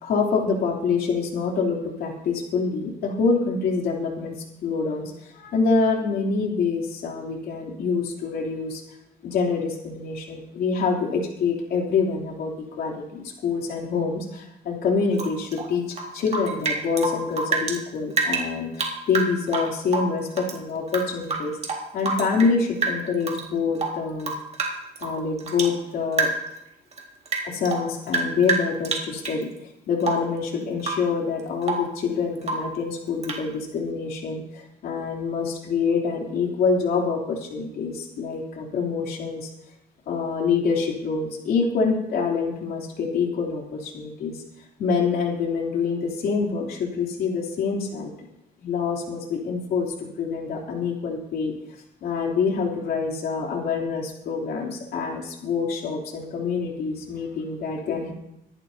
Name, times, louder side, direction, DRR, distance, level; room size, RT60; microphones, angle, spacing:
voice 1, 0.0-8.8 9.2-21.6 21.9-24.3 25.0-26.3 27.4-29.5 29.9-39.5 40.1-44.4 44.8-48.1 48.6-51.5 52.0-58.1, left 5 dB, 65° left, 0 dB, 3.2 m, -26 dB
Rain / Drip, 15.1-17.8 18.1-20.6 20.9-22.6 22.8-23.5 23.8-25.8 26.1-26.6 26.9-29.4 30.0-30.4 30.8-31.1 31.4-32.0 32.4-32.8 33.2-33.5, right 3 dB, 40° right, 2.0 m, -28 dB
24.5 x 11.5 x 2.8 m, 0.81 s
cardioid pair, 110°, 17 cm